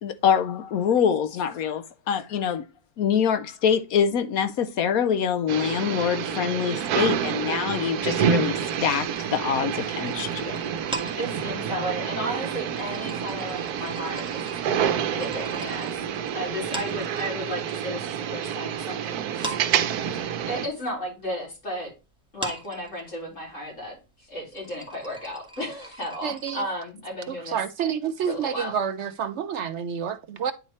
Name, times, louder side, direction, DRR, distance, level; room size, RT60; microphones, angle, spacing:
voice 1, 0.0-2.6 3.0-10.6, left 8 dB, 70° left, 1.1 m, -25 dB
sound 1, 5.5-20.7, right 8 dB, 85° right, 1.2 m, -28 dB
sound 2, 8.7-17.6 17.9-19.0 19.3-26.5, right 2 dB, 5° right, 1.4 m, -40 dB
voice 2, 11.2-14.4 15.1-16.0 16.3-19.5 20.4-21.9 22.3-24.0 24.3-27.6 28.3-28.7, equal, 50° left, 3.8 m, -34 dB
voice 3, 26.2-26.7 27.3-30.5, right 8 dB, 70° right, 0.7 m, -29 dB
9.8 x 4.2 x 3.1 m
omnidirectional pair, 1.6 m